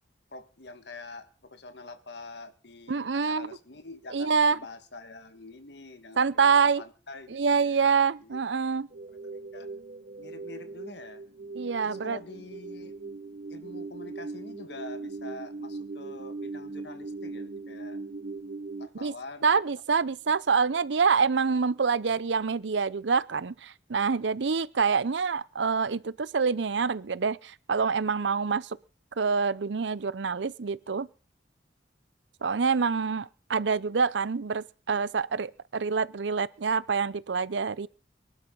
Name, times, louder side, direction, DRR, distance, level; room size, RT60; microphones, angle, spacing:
voice 1, 0.3-7.9 8.2-8.4 9.2-9.7 10.2-11.2 11.8-12.9 13.5-18.0 18.8-19.5 20.1-20.2, left 3 dB, 70° left, 1.8 m, -45 dB
voice 2, 2.9-3.5 4.1-4.6 6.2-6.8 7.3-8.9 11.6-12.2 19.0-19.1 19.4-28.8 29.2-31.1 32.4-37.9, right 5 dB, 85° right, 0.6 m, -26 dB
sound 1, 8.9-18.9, right 3 dB, 50° right, 1.3 m, -40 dB
23.5 x 12.0 x 3.9 m
head